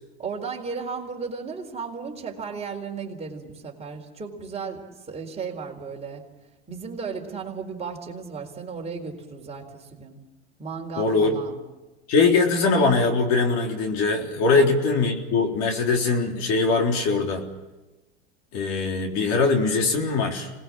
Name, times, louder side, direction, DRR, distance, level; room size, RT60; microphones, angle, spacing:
voice 1, 0.2-6.2 6.7-10.2 10.6-11.6 14.5-14.7, right 5 dB, 20° right, 1 dB, 4.1 m, -35 dB
voice 2, 11.0-11.4 12.1-17.5 18.5-20.5, left 3 dB, 50° left, 2 dB, 3.9 m, -21 dB
26.5 x 20.0 x 7.5 m, 1.1 s
hypercardioid pair, 110°, 33 cm